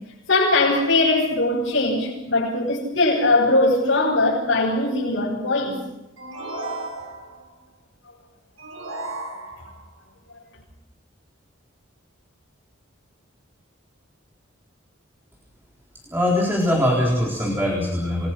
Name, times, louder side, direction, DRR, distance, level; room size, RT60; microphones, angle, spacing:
voice 1, 0.3-5.8, left 2 dB, 70° left, 7.6 m, -20 dB
sound 1, 6.2-7.5 8.6-9.9, right 2 dB, 85° right, 7.4 m, -34 dB
voice 2, 16.1-18.3, left 1 dB, 10° right, 3.9 m, -22 dB
28.5 x 21.5 x 6.1 m
head